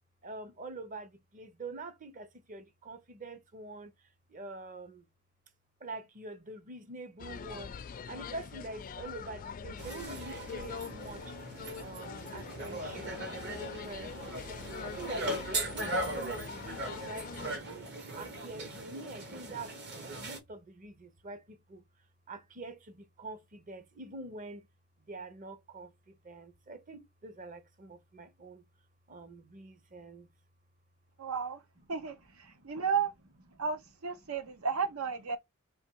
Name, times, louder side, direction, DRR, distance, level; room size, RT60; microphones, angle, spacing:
voice 1, 0.2-3.9 4.3-5.0 5.8-7.7 8.1-11.3 11.7-14.4 14.8-15.3 15.7-17.8 18.1-21.8 22.3-24.7 25.1-28.6 29.1-30.3 32.6-32.7, right 2 dB, 40° right, 0.7 m, -45 dB
sound 1, 7.2-17.6, left 6 dB, 40° left, 0.3 m, -44 dB
sound 2, 9.8-20.4, right 1 dB, 55° right, 1.1 m, -39 dB
voice 2, 31.2-31.6 31.9-33.1 33.6-35.4, right 6 dB, 90° right, 0.7 m, -33 dB
3.5 x 3.0 x 4.5 m
head